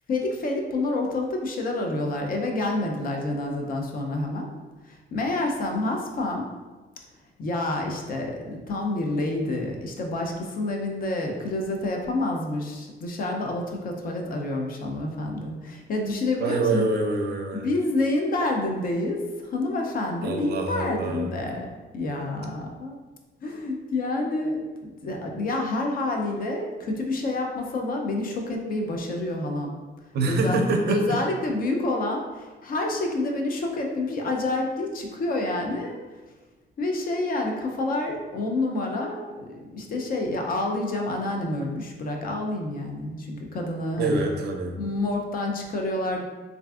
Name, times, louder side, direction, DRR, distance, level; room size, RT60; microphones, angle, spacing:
voice 1, 0.1-4.5 4.8-6.4 7.4-16.9 17.5-21.7 21.9-23.0 23.4-29.8 30.2-36.0 36.8-44.3 44.8-46.2, left 2 dB, 50° left, 1 dB, 0.4 m, -28 dB
voice 2, 16.4-17.7 20.2-21.4 30.1-31.2 44.0-44.8, right 3 dB, 60° right, 3 dB, 0.4 m, -26 dB
3.3 x 2.5 x 2.3 m, 1.2 s
cardioid pair, 145°, 19 cm